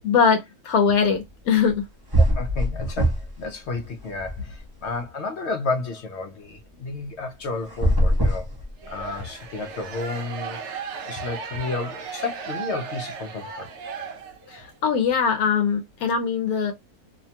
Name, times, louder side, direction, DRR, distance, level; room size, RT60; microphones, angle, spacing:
voice 1, 0.0-1.8 14.5-16.7, left 6 dB, 80° left, 1.1 m, -21 dB
sound 1, 1.7-1.8 2.1-3.4 3.8-4.9 7.6-9.2, right 1 dB, 20° right, 0.6 m, -22 dB
voice 2, 2.2-8.5 8.9-10.6 11.1-13.7, left 3 dB, 60° left, 0.8 m, -31 dB
sound 2, 8.8-14.7, right 6 dB, 60° right, 0.8 m, -36 dB
2.8 x 2.2 x 2.7 m
omnidirectional pair, 1.6 m